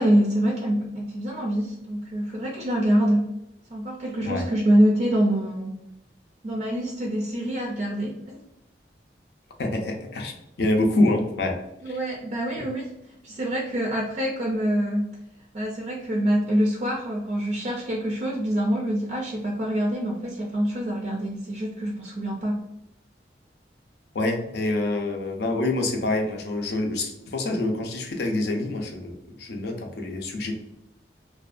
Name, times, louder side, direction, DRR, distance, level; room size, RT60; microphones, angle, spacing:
voice 1, 0.0-3.2 3.7-5.8 6.4-8.4 11.8-15.1 15.5-22.6, equal, 40° right, -1 dB, 0.4 m, -25 dB
voice 2, 9.6-11.6 11.9-12.0 12.6-12.7 24.1-30.5, left 2 dB, 65° left, 2 dB, 0.5 m, -26 dB
2.5 x 2.2 x 2.4 m, 0.85 s
head